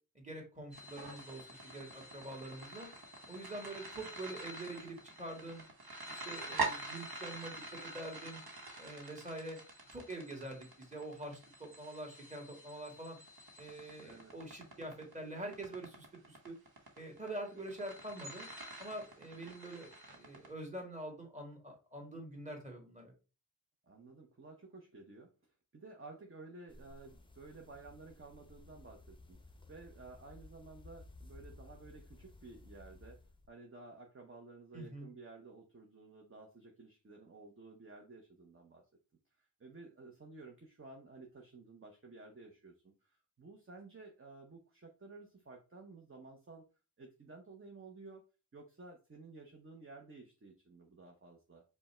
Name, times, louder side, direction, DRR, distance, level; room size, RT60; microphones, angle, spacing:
voice 1, 0.1-2.9 3.3-5.6 6.1-8.4 8.8-9.6 9.9-13.2 13.6-16.6 17.0-18.5 18.8-23.1 34.7-35.1, right 1 dB, 20° right, 1 dB, 1.6 m, -45 dB
sound 1, 0.7-20.5, right 3 dB, 90° right, 1.0 m, -46 dB
voice 2, 14.0-14.3 23.8-25.3 25.7-29.4 29.7-38.8 39.4-46.6 47.0-48.3 48.5-51.6, right 3 dB, 35° right, 2 dB, 0.8 m, -54 dB
sound 2, 26.7-33.5, left 2 dB, 15° left, 0.6 m, -57 dB
5.1 x 2.2 x 4.3 m, 0.32 s
wide cardioid pair, 85°, 36 cm